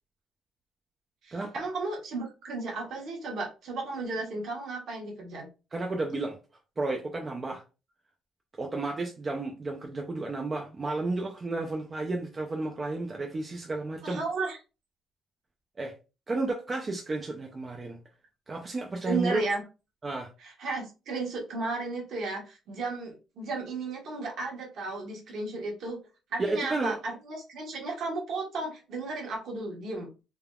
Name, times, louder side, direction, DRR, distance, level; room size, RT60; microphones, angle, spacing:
voice 1, 1.2-5.5 14.0-14.6 19.0-19.6 20.4-26.0 26.3-30.1, right 3 dB, 55° right, 1.2 m, -34 dB
voice 2, 5.7-6.4 6.8-7.6 8.6-14.2 15.8-15.9 16.3-18.0 18.5-19.4 20.0-20.3 26.4-27.0, right 2 dB, 20° right, 0.4 m, -32 dB
3.3 x 2.2 x 2.3 m
cardioid pair, 170°, 0 cm